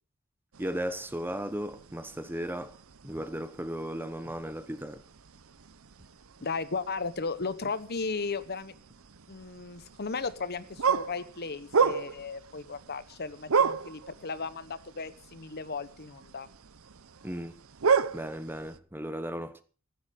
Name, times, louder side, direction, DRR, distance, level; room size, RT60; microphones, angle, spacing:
sound 1, 0.5-18.8, right 5 dB, 70° right, 0.8 m, -34 dB
voice 1, 0.6-2.8 3.0-5.0 17.2-17.5 18.1-19.6, equal, 10° right, 1.0 m, -36 dB
voice 2, 6.4-8.7 9.3-16.5, left 4 dB, 45° left, 1.0 m, -35 dB
16.0 x 12.5 x 5.2 m
head